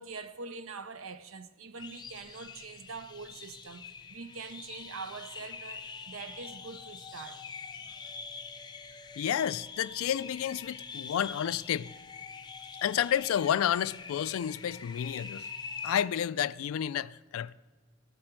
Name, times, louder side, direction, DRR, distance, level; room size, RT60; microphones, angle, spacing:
voice 1, 0.0-7.5 7.8-8.0, right 4 dB, 80° right, 0.7 m, -44 dB
sound 1, 1.8-16.0, left 5 dB, 20° left, 0.5 m, -44 dB
voice 2, 9.2-11.9 12.8-15.5 15.8-17.5, left 9 dB, 80° left, 0.3 m, -30 dB
16.0 x 7.6 x 4.5 m
head